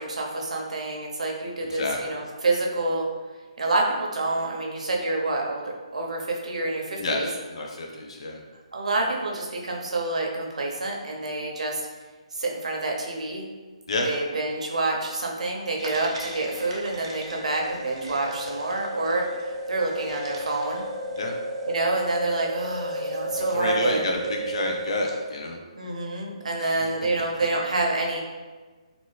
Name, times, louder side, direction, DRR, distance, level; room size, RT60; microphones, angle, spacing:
voice 1, 0.0-3.1 3.6-7.3 8.7-11.8 12.3-13.4 14.0-20.8 21.7-24.0 25.7-28.2, right 2 dB, 85° right, 0 dB, 0.7 m, -28 dB
voice 2, 1.7-2.2 7.0-8.4 13.9-14.1 21.2-21.3 23.5-25.6 26.6-26.7, left 2 dB, 55° left, 1 dB, 0.5 m, -29 dB
sound 1, 15.8-25.3, right 1 dB, 45° right, 0.6 m, -34 dB
2.7 x 2.5 x 3.1 m, 1.3 s
hypercardioid pair, 170°, 4 cm